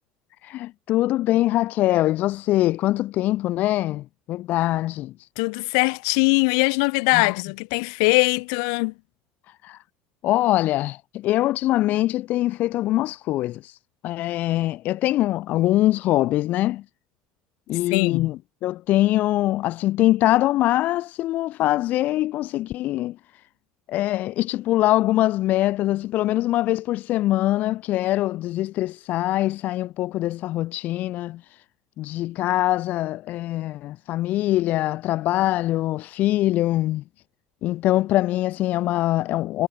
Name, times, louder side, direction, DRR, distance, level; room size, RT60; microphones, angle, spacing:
voice 1, 0.4-5.3 7.1-7.3 9.6-9.8 10.2-13.8 14.0-16.8 17.7-23.4 23.9-31.6 32.0-37.0 37.6-39.7, left 15 dB, 60° left, 6.3 m, -23 dB
voice 2, 5.4-8.9 17.9-18.3, left 35 dB, 75° left, 2.5 m, -21 dB
hypercardioid pair, 80°, 3 cm